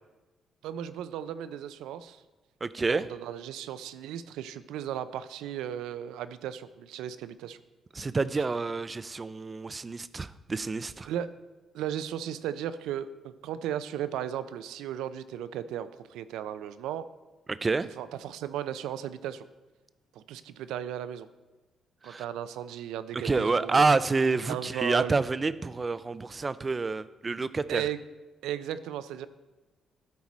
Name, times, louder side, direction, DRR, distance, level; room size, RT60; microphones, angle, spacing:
voice 1, 0.6-2.2 2.9-7.6 11.0-11.3 11.7-17.1 18.0-19.4 20.1-21.3 22.0-23.9 24.5-25.2 27.7-28.0 28.4-29.3, right 10 dB, 90° right, 13 dB, 0.4 m, -35 dB
voice 2, 2.6-3.1 7.9-11.1 17.5-17.9 22.0-22.2 23.1-27.8, right 3 dB, 30° right, 15 dB, 0.4 m, -28 dB
12.5 x 4.7 x 4.2 m, 1.2 s
cardioid pair, 90°, 0 cm